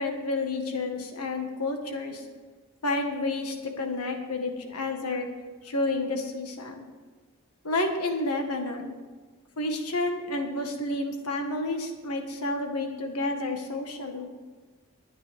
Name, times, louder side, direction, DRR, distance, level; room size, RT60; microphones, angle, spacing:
voice 1, 0.0-2.2 2.8-5.3 5.6-6.9 7.6-8.9 9.6-14.3, left 2 dB, 90° left, 4 dB, 1.6 m, -30 dB
20.0 x 9.4 x 3.5 m, 1.3 s
head